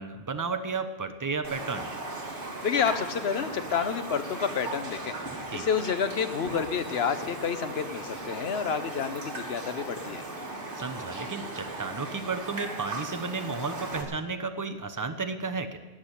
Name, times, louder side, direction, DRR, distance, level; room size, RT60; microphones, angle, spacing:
voice 1, 0.0-1.9 5.5-5.6 10.7-15.8, right 4 dB, 20° right, 8 dB, 0.8 m, -33 dB
Raindrop, 1.4-14.0, right 2 dB, 55° right, 2.3 m, -37 dB
voice 2, 2.6-10.2, left 7 dB, 70° left, 11 dB, 1.1 m, -29 dB
17.0 x 6.2 x 9.9 m, 1.3 s
omnidirectional pair, 1.1 m